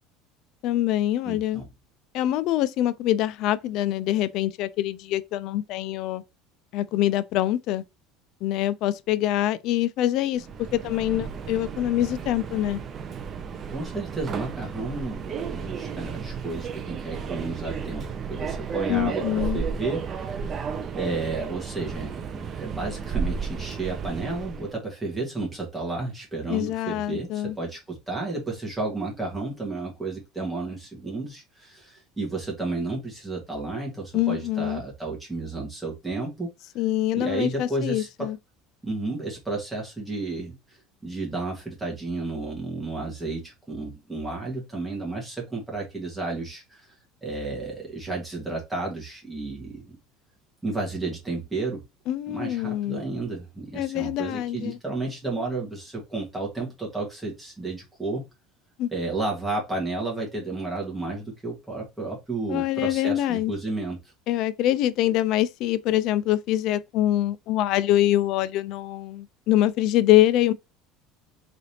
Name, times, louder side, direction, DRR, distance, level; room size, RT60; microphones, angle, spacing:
voice 1, 0.6-1.6 2.1-6.2 6.7-7.8 8.4-10.5 10.7-12.8 18.9-19.6 26.5-27.6 34.1-34.8 36.8-38.4 52.1-53.0 53.7-54.8 58.8-58.9 62.5-63.5 64.3-70.5, left 13 dB, 50° left, 0.3 m, -24 dB
voice 2, 1.2-1.7 13.7-20.6 20.9-36.5 37.1-38.3 38.8-40.8 41.0-46.9 47.2-50.0 50.6-51.8 52.3-58.3 58.9-64.0, right 3 dB, 5° right, 1.5 m, -32 dB
Subway metro underground, 10.3-24.7, right 6 dB, 25° right, 0.5 m, -33 dB
3.8 x 3.3 x 2.8 m
cardioid pair, 165°, 0 cm